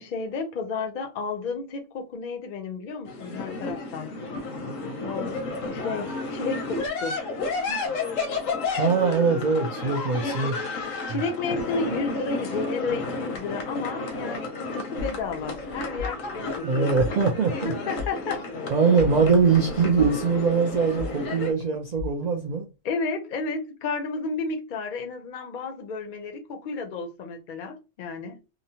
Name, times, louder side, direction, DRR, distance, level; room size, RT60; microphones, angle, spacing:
voice 1, 0.0-4.1 5.0-7.2 7.7-8.0 10.1-10.4 11.1-17.1 17.6-18.5 22.8-28.4, left 4 dB, 55° left, 0.6 m, -32 dB
sound 1, 3.1-21.5, left 3 dB, 85° left, 1.1 m, -32 dB
voice 2, 8.7-10.5 16.6-17.7 18.7-22.6, right 5 dB, 75° right, 0.3 m, -22 dB
sound 2, 15.0-22.5, left 4 dB, 40° right, 0.6 m, -39 dB
2.9 x 2.0 x 2.7 m
omnidirectional pair, 1.3 m